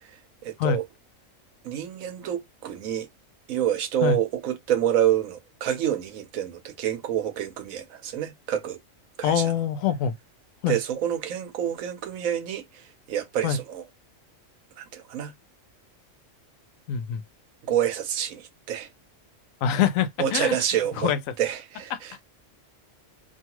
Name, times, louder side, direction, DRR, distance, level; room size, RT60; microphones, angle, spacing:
voice 1, 0.4-0.8 1.6-3.1 3.5-8.8 9.2-9.5 10.6-12.8 13.1-13.8 14.8-15.3 17.7-18.9 20.2-21.1 21.4-22.2, right 10 dB, 85° right, 1.1 m, -27 dB
voice 2, 9.2-10.1 10.6-10.8 13.4-13.6 16.9-17.2 19.6-20.5 21.0-21.2 21.9-22.0, left 8 dB, 85° left, 1.0 m, -24 dB
2.6 x 2.3 x 2.9 m
omnidirectional pair, 1.4 m